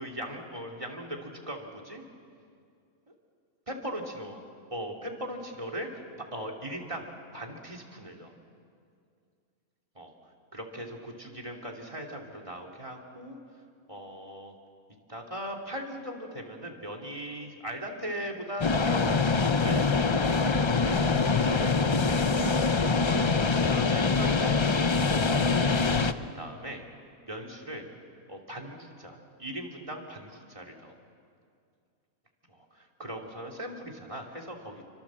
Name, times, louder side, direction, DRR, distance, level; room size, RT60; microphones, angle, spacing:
voice 1, 0.0-2.0 3.7-4.4 4.7-6.0 6.3-8.3 9.9-10.1 10.5-13.4 13.9-14.5 15.1-21.0 21.3-21.8 23.6-26.8 27.3-27.8 28.3-30.9 32.5-34.8, equal, 20° right, 4 dB, 2.8 m, -39 dB
sound 1, 18.6-26.1, left 4 dB, 35° left, 0.4 m, -24 dB
29.5 x 24.5 x 7.5 m, 2.4 s
omnidirectional pair, 1.5 m